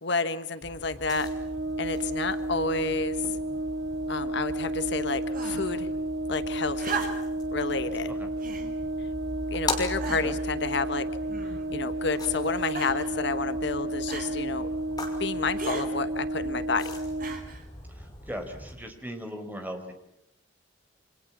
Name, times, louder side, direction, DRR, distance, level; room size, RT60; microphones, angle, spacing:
voice 1, 0.0-1.3 1.8-3.3 4.1-5.9 6.3-7.1 7.5-8.1 9.5-11.1 11.7-14.7 15.2-16.9, left 4 dB, 65° left, 11 dB, 1.4 m, -30 dB
sound 1, 0.6-18.7, left 2 dB, 20° left, 5.8 m, -41 dB
Brass instrument, 1.1-17.5, right 1 dB, 85° right, 1.9 m, -32 dB
sound 2, 5.3-5.8 6.8-7.4 8.4-8.7 9.4-9.5 10.0-10.4 11.3-11.8 12.7-13.1 14.1-14.3 15.6-15.9 17.2-17.6 18.7-18.8, right 4 dB, 45° right, 5.1 m, -36 dB
voice 2, 10.0-10.4 17.9-19.9, equal, 10° right, 5 dB, 4.4 m, -39 dB
29.0 x 26.0 x 7.3 m, 0.81 s
head